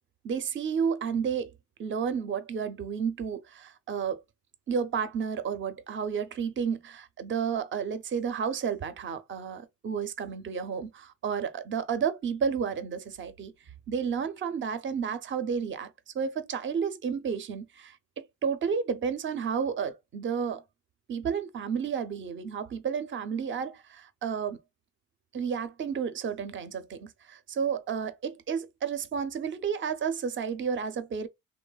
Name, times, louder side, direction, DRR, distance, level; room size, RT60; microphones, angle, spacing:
voice 1, 0.2-1.5 1.8-4.2 4.7-13.5 13.9-15.9 16.1-20.6 21.1-24.6 25.3-31.3, right 6 dB, 40° right, 0.6 m, -31 dB
3.0 x 2.1 x 2.2 m
cardioid pair, 90°, 30 cm